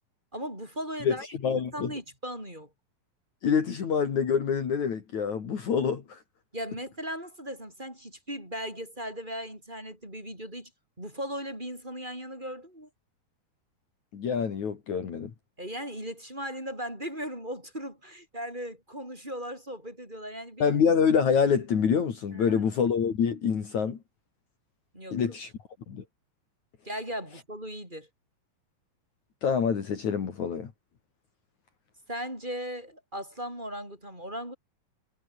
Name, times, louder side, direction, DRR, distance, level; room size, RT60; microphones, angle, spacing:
voice 1, 0.3-1.3 1.5-2.7 6.5-10.7 11.0-12.9 15.6-20.7 22.3-22.6 24.9-25.4 26.8-28.1 32.1-34.6, equal, 10° right, 7.9 m, -37 dB
voice 2, 1.4-1.9 3.4-6.2 14.1-15.3 20.6-24.0 25.1-25.5 25.9-26.0 29.4-30.7, left 6 dB, 55° left, 3.9 m, -26 dB
omnidirectional pair, 4.1 m